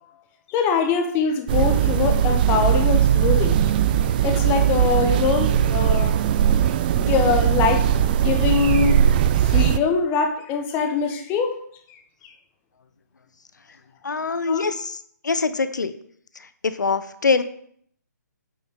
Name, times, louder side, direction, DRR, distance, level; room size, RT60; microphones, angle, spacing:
voice 1, 0.5-3.7 4.2-6.2 6.9-9.0 9.4-11.6 12.2-12.3 14.5-14.7, left 6 dB, 20° left, 6 dB, 1.0 m, -23 dB
sound 1, 1.5-9.8, right 10 dB, 30° right, 0.4 m, -19 dB
voice 2, 14.0-15.9 16.6-17.4, left 4 dB, 75° left, 12 dB, 0.7 m, -23 dB
8.5 x 6.4 x 3.6 m, 0.64 s
figure-of-eight pair, 140°, 10 cm